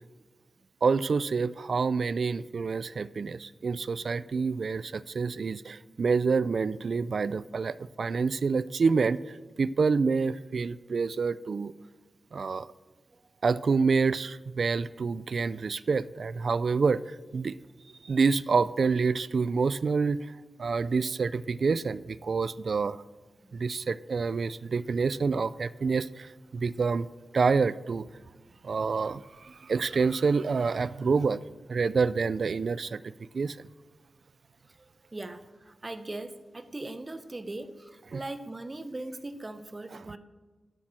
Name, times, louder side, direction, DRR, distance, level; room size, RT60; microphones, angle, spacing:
voice 1, 0.8-11.7 12.3-12.7 13.4-17.6 18.0-20.3 20.6-23.0 23.5-27.1 27.3-28.1 28.6-31.4 31.7-33.6 38.1-38.2, right 4 dB, 65° right, 18 dB, 0.3 m, -27 dB
voice 2, 34.8-40.2, right 2 dB, 25° right, 11 dB, 0.7 m, -40 dB
11.5 x 7.3 x 6.2 m, 1.3 s
wide cardioid pair, 110°, 0 cm